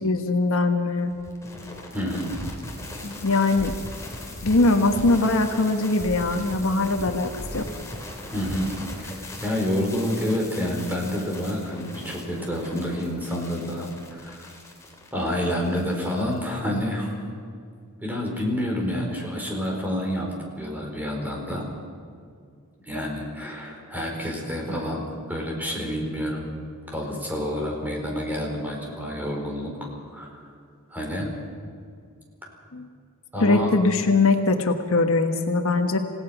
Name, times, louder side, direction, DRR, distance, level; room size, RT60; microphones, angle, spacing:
voice 1, 0.0-1.1 3.0-3.7 4.4-7.7 32.7-32.9 33.4-36.0, left 3 dB, 65° left, 5 dB, 1.3 m, -21 dB
sound 1, 1.1-16.4, left 1 dB, 15° left, 3.5 m, -38 dB
voice 2, 1.9-2.3 8.3-8.7 9.0-9.1 9.4-14.5 15.1-17.1 18.0-21.7 22.8-26.5 26.9-30.5 30.9-31.3 33.3-33.7, equal, 10° right, -1 dB, 4.5 m, -28 dB
28.0 x 17.0 x 5.9 m, 2.3 s
head